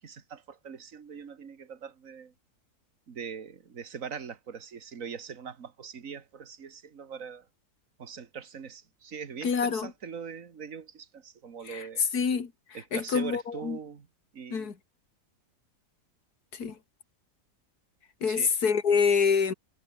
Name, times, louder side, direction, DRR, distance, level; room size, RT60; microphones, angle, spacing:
voice 1, 0.0-2.3 3.1-7.5 8.0-12.0 12.7-14.1 14.3-14.7 18.3-18.5, right 6 dB, 55° right, 2.1 m, -42 dB
voice 2, 9.4-9.9 11.7-13.8 14.5-14.7 16.5-16.8 18.2-19.5, left 6 dB, 70° left, 2.7 m, -27 dB
omnidirectional pair, 1.7 m